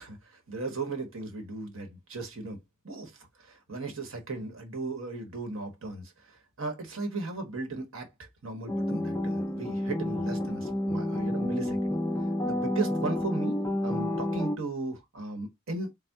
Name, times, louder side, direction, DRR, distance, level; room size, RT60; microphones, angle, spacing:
voice 1, 0.0-2.6 2.8-11.8 12.4-15.9, right 3 dB, 70° right, 1.1 m, -36 dB
sound 1, 8.7-14.6, left 1 dB, 15° left, 0.4 m, -30 dB
4.1 x 2.1 x 3.4 m
head